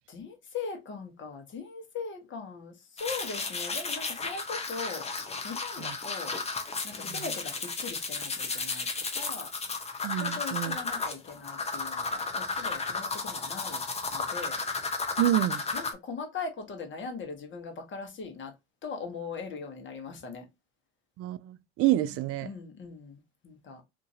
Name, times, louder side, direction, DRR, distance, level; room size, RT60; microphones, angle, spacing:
voice 1, 0.1-5.1 5.4-6.3 6.8-8.9 9.1-9.5 10.0-13.8 14.1-14.6 15.7-18.5 18.8-20.4 22.1-23.8, left 5 dB, 35° left, 1.2 m, -40 dB
sound 1, 3.0-15.9, left 4 dB, 20° left, 0.7 m, -33 dB
voice 2, 10.0-10.8 15.2-15.6 21.2-22.5, right 14 dB, 45° right, 0.4 m, -28 dB
2.8 x 2.6 x 2.7 m
hypercardioid pair, 75°, 32 cm